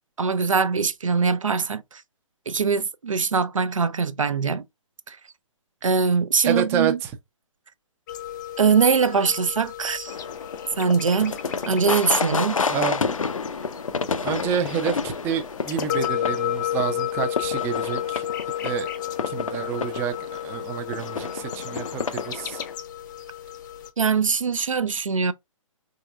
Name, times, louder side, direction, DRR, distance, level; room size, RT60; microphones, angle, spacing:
voice 1, 0.2-2.0 2.5-4.6 5.1-5.2 5.8-7.0 8.6-10.2 10.8-11.4 11.7-12.6 24.0-25.3, right 5 dB, 75° right, 0.6 m, -22 dB
voice 2, 6.4-7.1 12.7-13.0 14.2-18.3 18.6-18.9 19.3-20.1 20.4-22.6, right 8 dB, 15° right, 0.4 m, -28 dB
sound 1, 8.1-23.9, left 12 dB, 35° left, 0.6 m, -33 dB
sound 2, 10.1-22.7, left 5 dB, 75° left, 0.5 m, -30 dB
4.1 x 3.7 x 2.3 m
figure-of-eight pair, 130°, 17 cm